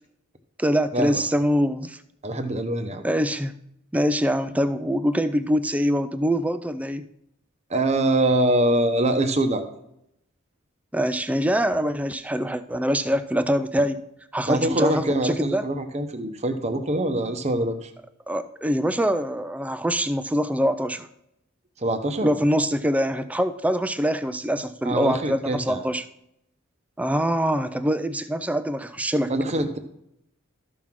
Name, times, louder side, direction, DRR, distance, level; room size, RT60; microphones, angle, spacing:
voice 1, 0.6-2.0 3.0-3.5 3.9-7.0 10.9-14.0 14.3-15.7 18.3-21.1 22.2-26.1 27.0-29.3, equal, 5° right, 12 dB, 0.3 m, -24 dB
voice 2, 2.2-3.0 7.7-9.7 14.5-17.9 21.8-22.3 24.8-25.8 29.3-29.8, right 1 dB, 30° right, 7 dB, 0.8 m, -24 dB
13.0 x 6.0 x 3.7 m, 0.78 s
head